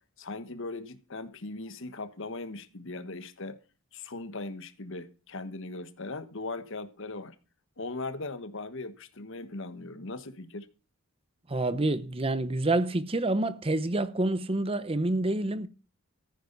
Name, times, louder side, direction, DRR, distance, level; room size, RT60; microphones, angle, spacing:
voice 1, 0.2-3.6 3.9-7.4 7.8-10.7, left 3 dB, 60° left, 1.3 m, -39 dB
voice 2, 11.5-15.7, right 2 dB, 25° right, 0.8 m, -27 dB
14.5 x 9.5 x 3.9 m
head